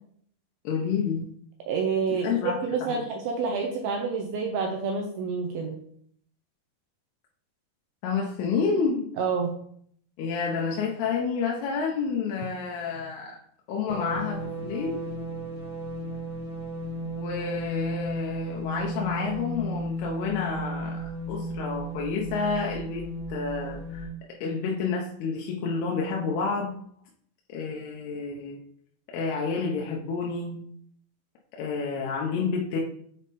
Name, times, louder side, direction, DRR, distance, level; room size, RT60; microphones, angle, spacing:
voice 1, 0.6-1.3 2.2-3.0 8.0-9.2 10.2-13.4 13.7-15.0 17.0-24.1 24.4-26.8 27.5-28.6 29.1-30.7 31.6-32.8, left 5 dB, 85° left, -1 dB, 2.7 m, -29 dB
voice 2, 1.7-5.8 9.2-9.6, right 5 dB, 80° right, 2 dB, 2.4 m, -28 dB
sound 1, 13.9-24.1, equal, 70° left, 3.4 m, -34 dB
7.3 x 3.6 x 4.1 m, 0.64 s
omnidirectional pair, 4.5 m